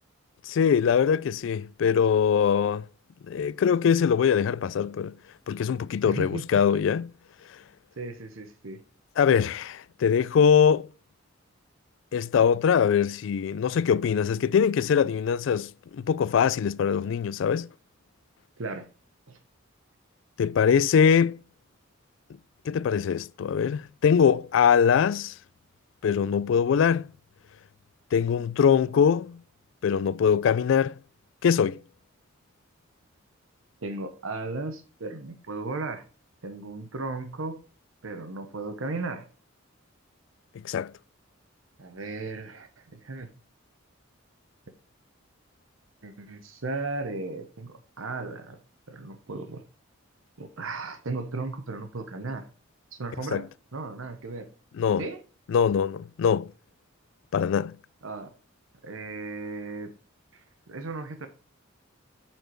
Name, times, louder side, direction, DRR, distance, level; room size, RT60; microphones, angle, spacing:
voice 1, 0.5-2.8 3.3-5.2 5.5-7.1 9.2-10.9 12.1-17.7 20.4-21.4 22.7-25.3 26.0-27.1 28.1-29.4 29.8-30.9 31.4-31.8 40.6-40.9 53.3-53.4 54.8-55.1 55.5-56.5 57.3-57.8, left 7 dB, 65° left, 0.3 m, -22 dB
voice 2, 6.0-6.4 8.0-8.8 18.6-18.9 19.3-19.4 33.8-36.0 36.4-37.6 38.0-39.3 41.8-43.3 46.0-48.6 48.9-49.6 50.4-52.5 52.9-54.5 55.0-55.2 58.0-58.3 58.8-59.9 60.3-61.3, right 3 dB, 80° right, 0.9 m, -36 dB
7.8 x 4.4 x 4.5 m
head